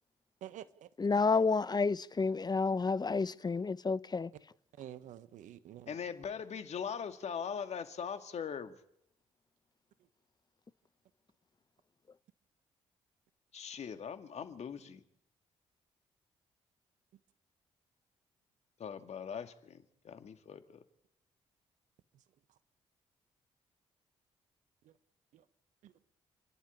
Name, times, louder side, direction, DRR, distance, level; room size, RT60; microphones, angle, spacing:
voice 1, 0.4-0.9 4.8-5.9 25.3-25.4 25.8-26.0, right 11 dB, 75° right, 1.2 m, -48 dB
voice 2, 1.0-4.3, left 4 dB, 35° left, 1.0 m, -30 dB
voice 3, 5.9-8.8 13.5-15.0 18.8-20.8, left 7 dB, 60° left, 2.3 m, -41 dB
29.5 x 11.5 x 10.0 m
hypercardioid pair, 45°, 13 cm